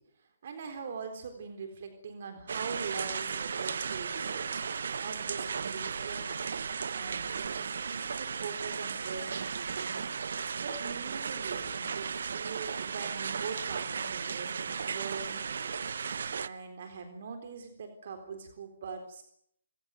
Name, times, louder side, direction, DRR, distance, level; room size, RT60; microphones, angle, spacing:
voice 1, 0.0-4.5 5.0-15.9 16.4-19.2, right 5 dB, 50° right, 7 dB, 3.9 m, -42 dB
sound 1, 2.5-16.5, right 6 dB, 65° right, 0.9 m, -35 dB
28.5 x 16.5 x 9.2 m, 0.72 s
hypercardioid pair, 160°, 0 cm